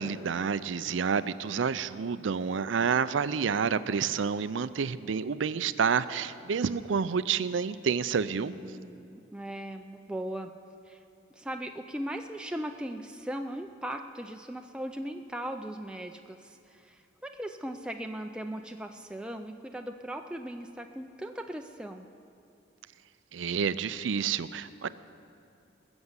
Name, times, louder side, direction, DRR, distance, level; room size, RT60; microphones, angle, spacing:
voice 1, 0.0-8.5 23.3-24.9, right 6 dB, 90° right, 15 dB, 0.5 m, -29 dB
voice 2, 8.4-10.6 10.9-11.0 11.3-22.1, right 1 dB, 5° right, 4 dB, 0.4 m, -38 dB
20.5 x 7.1 x 8.0 m, 2.6 s
head